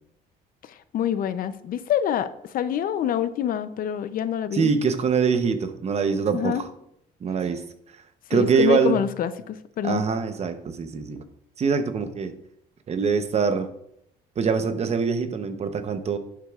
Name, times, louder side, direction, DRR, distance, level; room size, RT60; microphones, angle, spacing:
voice 1, 0.6-4.7 6.3-6.6 8.3-10.0, left 9 dB, 55° left, 13 dB, 0.6 m, -26 dB
voice 2, 4.5-6.7 7.2-7.6 8.3-9.0 9.8-11.2 11.6-12.3 12.9-13.7 14.4-16.2, right 5 dB, 40° right, 9 dB, 0.8 m, -23 dB
10.5 x 8.4 x 2.4 m, 0.76 s
cardioid pair, 110°, 17 cm